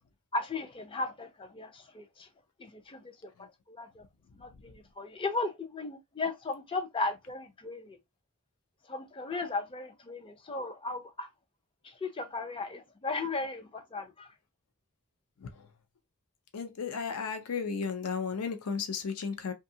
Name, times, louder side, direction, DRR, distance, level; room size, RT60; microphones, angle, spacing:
voice 1, 0.3-2.3 2.6-3.0 3.7-4.0 4.4-8.0 8.9-11.3 12.0-14.3, left 3 dB, 25° left, 0.4 m, -36 dB
voice 2, 16.5-19.5, left 5 dB, 80° left, 0.5 m, -34 dB
2.7 x 2.3 x 2.6 m
head